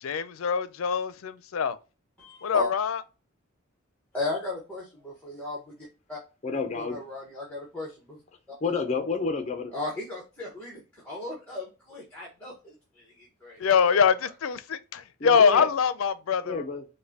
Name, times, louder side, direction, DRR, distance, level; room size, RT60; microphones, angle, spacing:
voice 1, 0.0-1.8 2.4-3.0 13.6-16.6, left 6 dB, 90° left, 0.4 m, -24 dB
voice 2, 2.2-2.7 4.1-5.8 6.1-6.2 6.7-8.2 9.7-14.0, left 2 dB, 10° left, 1.1 m, -36 dB
voice 3, 6.4-7.0 8.6-9.7 15.2-15.7 16.4-16.9, left 4 dB, 35° left, 0.5 m, -30 dB
5.1 x 2.2 x 2.8 m
head